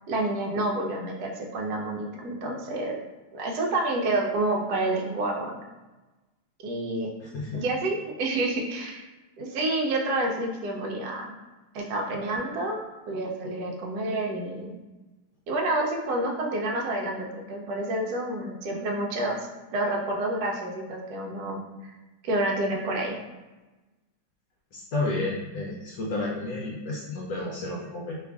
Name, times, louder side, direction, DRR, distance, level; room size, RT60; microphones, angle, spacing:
voice 1, 0.1-3.0 3.3-5.6 6.6-7.1 7.5-9.1 9.4-11.3 11.7-12.8 13.1-14.8 15.5-19.4 19.7-21.9 22.2-23.2, right 2 dB, 70° right, 1 dB, 1.0 m, -29 dB
voice 2, 7.2-7.6 24.7-28.2, left 2 dB, 70° left, -4 dB, 1.1 m, -31 dB
3.0 x 2.4 x 3.4 m, 1.1 s
omnidirectional pair, 2.0 m